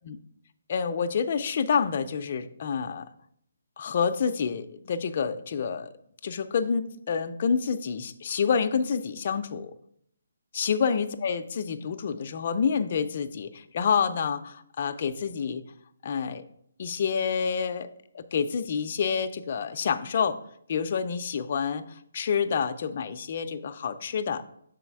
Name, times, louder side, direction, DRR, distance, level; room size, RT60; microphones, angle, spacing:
voice 1, 0.7-3.1 3.8-5.9 6.2-9.7 10.5-15.6 16.0-16.4 16.8-17.9 18.1-20.4 20.7-24.4, left 6 dB, 35° left, 9 dB, 0.4 m, -28 dB
6.9 x 4.1 x 4.6 m, 0.70 s
hypercardioid pair, 175°, 0 cm